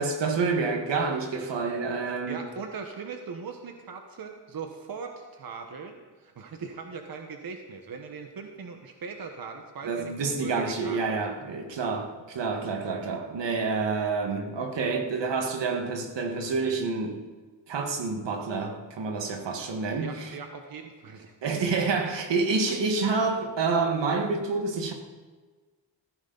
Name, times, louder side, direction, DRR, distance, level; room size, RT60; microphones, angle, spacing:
voice 1, 0.0-2.4 9.8-17.2 17.7-20.3 21.4-24.9, right 4 dB, 75° right, 1.8 m, -28 dB
voice 2, 2.3-11.4 20.0-21.5, right 5 dB, 55° right, 1.3 m, -40 dB
16.0 x 14.5 x 4.1 m
cardioid pair, 110°, 43 cm